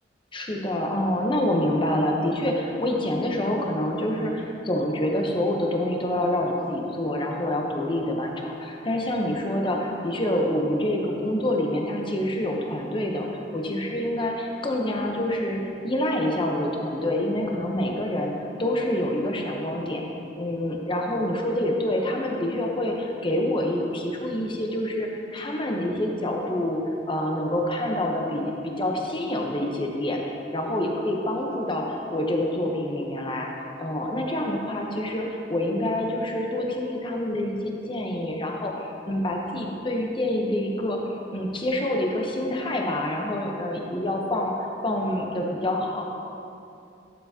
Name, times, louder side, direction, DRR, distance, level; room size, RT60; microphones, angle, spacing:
voice 1, 0.3-13.3 13.5-18.3 18.6-20.0 20.4-26.8 27.1-41.0 41.3-46.1, left 1 dB, 30° left, 0 dB, 0.9 m, -27 dB
11.5 x 7.2 x 2.8 m, 2.7 s
head